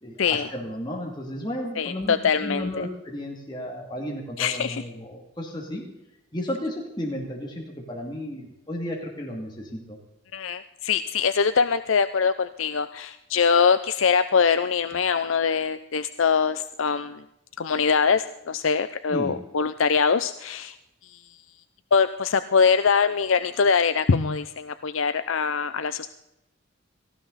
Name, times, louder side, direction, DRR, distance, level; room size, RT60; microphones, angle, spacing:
voice 1, 0.0-5.8 6.3-10.0 19.1-19.4, equal, 20° left, -2 dB, 2.6 m, -33 dB
voice 2, 1.8-2.9 4.4-4.8 10.3-17.2 17.6-20.7 21.0-21.2 21.9-26.1, left 5 dB, 80° left, 11 dB, 0.6 m, -23 dB
18.0 x 15.0 x 4.1 m, 0.88 s
head